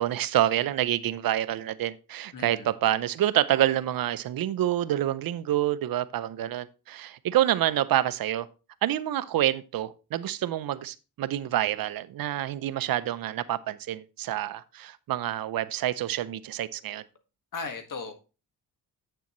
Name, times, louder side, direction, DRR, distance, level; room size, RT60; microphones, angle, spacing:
voice 1, 0.0-8.5 8.8-17.0, right 12 dB, 70° right, 0.6 m, -27 dB
voice 2, 2.3-2.7 17.5-18.1, left 4 dB, 60° left, 1.7 m, -36 dB
8.4 x 6.8 x 3.0 m
cardioid pair, 85°, 36 cm